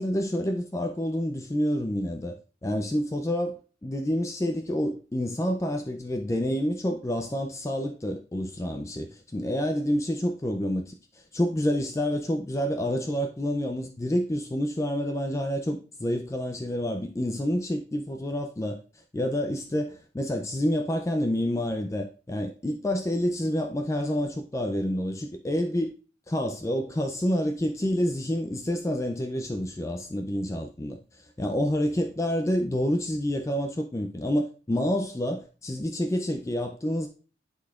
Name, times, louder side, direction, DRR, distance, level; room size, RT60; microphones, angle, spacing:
voice 1, 0.0-2.4 2.6-18.8 19.1-25.9 26.3-37.1, equal, 15° left, 0.4 m, -28 dB
11.0 x 4.0 x 2.4 m
head